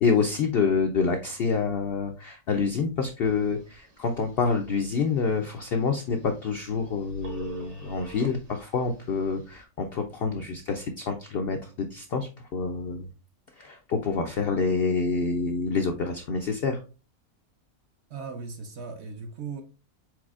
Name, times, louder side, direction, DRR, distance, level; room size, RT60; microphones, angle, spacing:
voice 1, 0.0-13.1 13.6-16.8, left 5 dB, 70° left, 5 dB, 0.5 m, -27 dB
Telephone, 3.2-9.6, right 5 dB, 45° right, 1.1 m, -48 dB
voice 2, 18.1-19.6, right 5 dB, 60° right, 5 dB, 0.7 m, -37 dB
4.6 x 4.1 x 2.4 m, 0.33 s
omnidirectional pair, 1.5 m